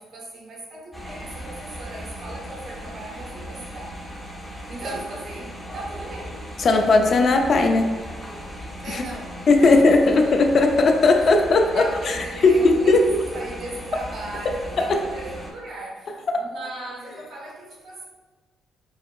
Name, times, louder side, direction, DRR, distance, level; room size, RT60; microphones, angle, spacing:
voice 1, 0.0-4.0 4.6-6.4 8.8-10.3 11.2-11.4 11.7-18.0, right 2 dB, 65° right, -4 dB, 1.1 m, -37 dB
sound 1, 0.9-15.5, equal, 5° left, 0.6 m, -37 dB
voice 2, 6.6-7.9 8.9-9.0 9.5-12.2 12.4-13.0 14.9-15.0 16.3-16.5, left 3 dB, 55° left, 4 dB, 0.4 m, -17 dB
4.7 x 2.0 x 2.3 m, 1.3 s
cardioid pair, 90°, 0 cm